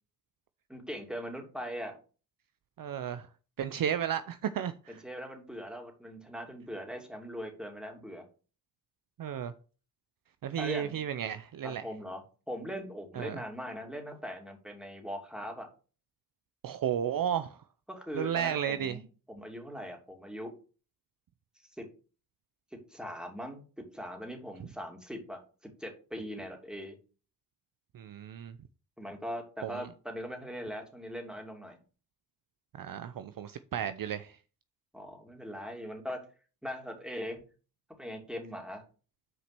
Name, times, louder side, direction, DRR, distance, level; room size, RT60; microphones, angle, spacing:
voice 1, 0.7-2.0 4.9-8.2 10.6-11.0 11.6-15.7 17.9-19.0 19.3-20.5 21.8-21.9 22.9-23.6 23.9-25.4 25.8-27.0 29.0-31.8 34.9-36.2 36.6-37.4 38.0-38.8, equal, ahead, 2.8 m, -40 dB
voice 2, 2.8-3.3 3.6-5.0 9.2-9.5 10.4-11.8 13.1-13.4 16.6-17.6 18.1-19.0 24.6-24.7 27.9-28.6 29.6-29.9 32.7-34.4, right 9 dB, 55° right, 0.7 m, -33 dB
6.2 x 5.0 x 6.0 m
supercardioid pair, 50°, 41 cm